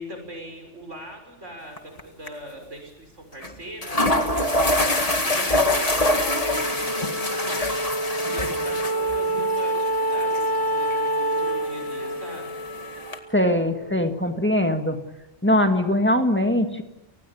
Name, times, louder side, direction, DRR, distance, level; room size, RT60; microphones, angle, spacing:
voice 1, 0.0-7.7 8.0-12.5, right 1 dB, 80° right, 4 dB, 6.3 m, -41 dB
sound 1, 1.8-2.0 2.3-2.4 3.4-3.5 3.8-13.2, left 1 dB, 30° left, 2.0 m, -26 dB
Wind instrument woodwind instrument, 5.6-14.2, right 1 dB, 30° right, 7.1 m, -28 dB
voice 2, 13.3-15.0 15.4-16.8, left 1 dB, 10° left, 5 dB, 1.8 m, -21 dB
29.5 x 20.0 x 7.1 m, 1.0 s
omnidirectional pair, 1.2 m